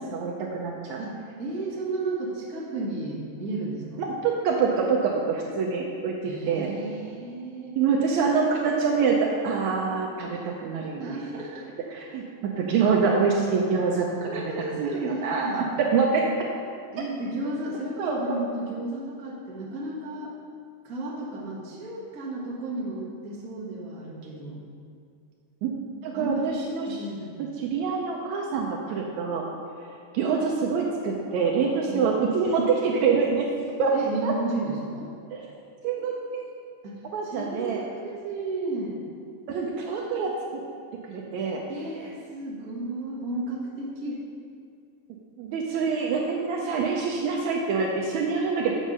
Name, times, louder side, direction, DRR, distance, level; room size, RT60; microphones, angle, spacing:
voice 1, 0.1-1.0 4.0-6.7 7.8-11.2 11.9-14.4 14.8-15.6 15.9-16.3 18.0-18.4 25.6-25.7 26.0-26.9 27.6-29.4 30.1-33.5 33.8-33.9 34.2-34.3 35.3-35.4 35.8-36.4 37.1-37.8 39.5-40.3 41.1-41.6 45.4-48.8, right 5 dB, 75° right, 0 dB, 1.8 m, -25 dB
voice 2, 1.0-4.0 6.2-7.8 11.0-11.7 14.2-15.7 16.9-20.3 20.8-24.6 26.1-26.5 26.8-27.4 31.9-32.1 33.9-35.1 36.8-39.0 41.7-44.2, right 2 dB, 40° right, -4 dB, 1.3 m, -33 dB
7.2 x 7.2 x 5.4 m, 2.3 s
omnidirectional pair, 3.6 m